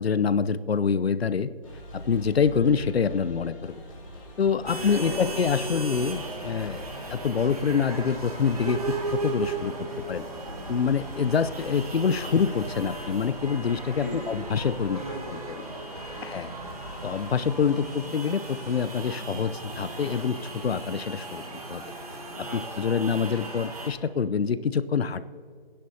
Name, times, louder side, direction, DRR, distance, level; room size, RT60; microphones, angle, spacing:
voice 1, 0.0-1.5 1.9-3.8 4.4-8.8 9.1-10.3 10.7-15.0 15.3-15.4 16.2-16.5 17.0-21.4 21.7-21.9 22.4-25.2, left 6 dB, 80° left, 14 dB, 0.7 m, -26 dB
sound 1, 1.6-17.9, left 1 dB, 35° left, 2.5 m, -44 dB
voice 2, 4.6-6.5 14.0-14.4 14.9-16.3 22.4-23.0, equal, 15° right, -2 dB, 0.9 m, -40 dB
sound 2, 4.7-23.9, right 2 dB, 40° right, 1.6 m, -37 dB
sound 3, 8.0-22.3, right 3 dB, 70° right, 1.4 m, -49 dB
23.0 x 10.0 x 2.8 m, 2.2 s
hypercardioid pair, 180°, 30 cm